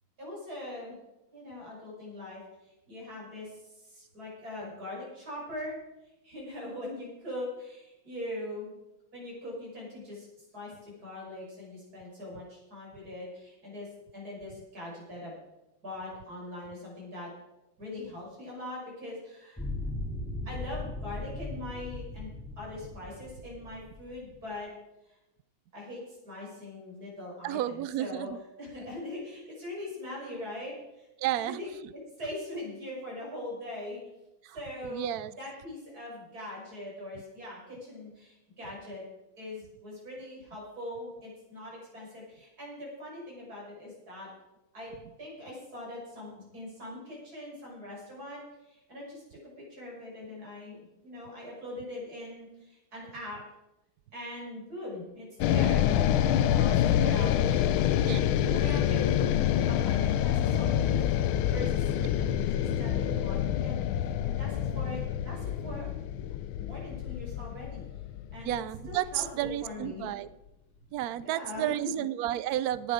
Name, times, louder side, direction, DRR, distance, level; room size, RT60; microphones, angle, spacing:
voice 1, 0.2-1.0 1.3-5.8 6.0-8.7 9.1-10.3 10.5-13.9 14.1-15.4 15.8-17.3 17.8-19.6 20.4-22.3 22.6-24.7 25.0-25.2 25.7-28.3 28.6-31.1 31.4-31.7 32.2-34.0 34.5-35.1 35.4-39.0 39.4-44.3 44.7-44.9 45.2-53.4 54.1-57.7 58.5-59.0 59.7-61.0 61.5-65.9 66.6-67.9 68.3-68.6 68.9-70.1 71.2-71.9, left 1 dB, 45° right, -4 dB, 6.6 m, -41 dB
sound 1, 19.6-24.5, left 2 dB, 5° left, 2.5 m, -38 dB
voice 2, 27.4-28.4 31.2-31.6 34.4-34.6 34.8-35.3 58.1-58.7 68.4-70.3 70.9-72.9, right 13 dB, 85° right, 16 dB, 0.8 m, -32 dB
sound 2, 55.4-69.7, left 10 dB, 80° left, 1.5 m, -27 dB
18.0 x 11.0 x 5.0 m, 0.97 s
omnidirectional pair, 2.3 m